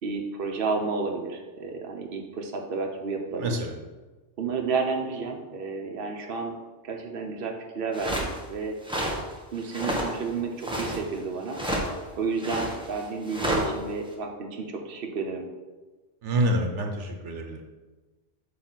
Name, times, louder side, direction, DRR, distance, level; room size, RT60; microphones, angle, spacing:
voice 1, 0.0-3.6 4.4-6.5 6.8-8.8 9.5-11.6 12.2-15.5, right 4 dB, 55° right, 2 dB, 1.0 m, -31 dB
voice 2, 3.4-3.7 16.2-17.7, right 1 dB, 85° right, 3 dB, 1.2 m, -27 dB
sound 1, 7.9-8.4 8.9-9.2 9.6-10.2 10.4-11.0 11.5-11.9 12.4-13.7, equal, 5° right, 1.1 m, -29 dB
7.9 x 3.2 x 6.2 m, 1.2 s
omnidirectional pair, 1.2 m